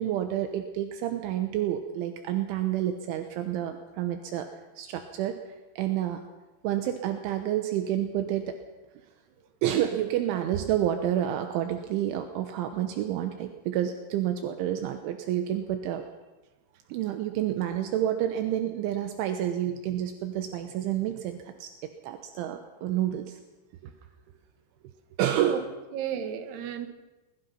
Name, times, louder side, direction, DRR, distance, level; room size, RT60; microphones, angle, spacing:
voice 1, 0.0-4.5 4.8-5.4 5.8-6.2 6.6-8.6 9.6-16.0 16.9-21.7 22.0-23.4 23.8-23.9 25.2-25.6, right 11 dB, 80° right, 6 dB, 3.4 m, -29 dB
voice 2, 25.9-26.9, right 9 dB, 60° right, 6 dB, 3.6 m, -34 dB
23.0 x 20.5 x 5.9 m, 1.1 s
omnidirectional pair, 5.7 m